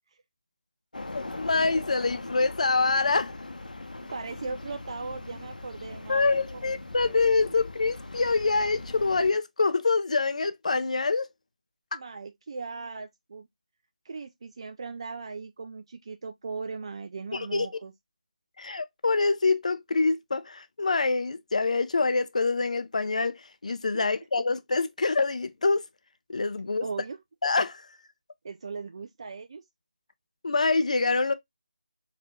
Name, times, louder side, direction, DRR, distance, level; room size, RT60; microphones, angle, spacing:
sound 1, 0.9-9.3, left 2 dB, 70° left, 0.9 m, -40 dB
voice 1, 1.1-3.3 6.1-11.3 11.9-12.0 17.3-17.7 18.6-25.8 26.3-26.9 27.4-27.9 30.4-31.3, left 3 dB, 55° left, 0.6 m, -25 dB
voice 2, 4.1-6.7 7.3-7.5 11.9-13.5 14.0-17.9 23.9-24.1 26.8-27.2 28.4-29.6, right 4 dB, 40° right, 0.4 m, -38 dB
4.8 x 2.7 x 3.5 m
figure-of-eight pair, 155°, 5 cm